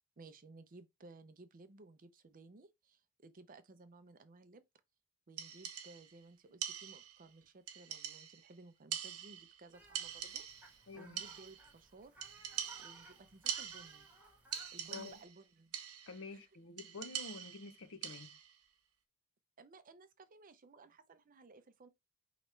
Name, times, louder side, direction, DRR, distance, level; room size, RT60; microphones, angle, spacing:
voice 1, 0.2-4.6 5.3-12.3 12.8-14.1 14.7-15.7 16.3-16.5 19.6-21.9, right 3 dB, 40° right, 0.6 m, -58 dB
sound 1, 5.4-6.2 6.6-7.3 7.7-8.5 8.9-9.6 9.9-10.8 11.2-11.7 12.2-14.2 14.5-15.4 15.7-16.2 16.8-18.5, right 9 dB, 80° right, 0.8 m, -44 dB
Fowl, 9.7-15.2, right 1 dB, 5° right, 1.2 m, -60 dB
voice 2, 10.9-11.2 14.9-15.2 16.1-18.3, left 3 dB, 60° left, 0.7 m, -49 dB
4.9 x 3.1 x 3.2 m
head